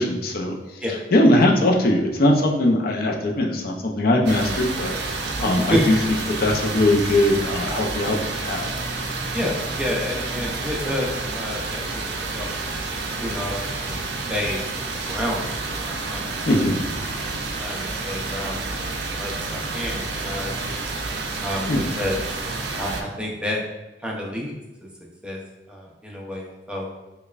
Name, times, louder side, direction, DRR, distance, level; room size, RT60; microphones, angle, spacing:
voice 1, 0.0-0.8 1.1-8.2 8.4-8.7 16.5-16.8 21.7-21.9, left 1 dB, 60° left, 1 dB, 0.5 m, -20 dB
sound 1, 4.3-23.0, right 3 dB, 70° right, 0.4 m, -29 dB
voice 2, 9.3-12.7 13.2-14.0 14.3-15.4 15.8-16.6 17.1-17.3 17.6-20.9 21.4-21.7 22.0-22.2 22.8-23.6 24.0-24.5 25.2-25.4 25.7-26.9, left 1 dB, 5° right, -2 dB, 0.5 m, -30 dB
5.1 x 2.2 x 2.4 m, 1.0 s
head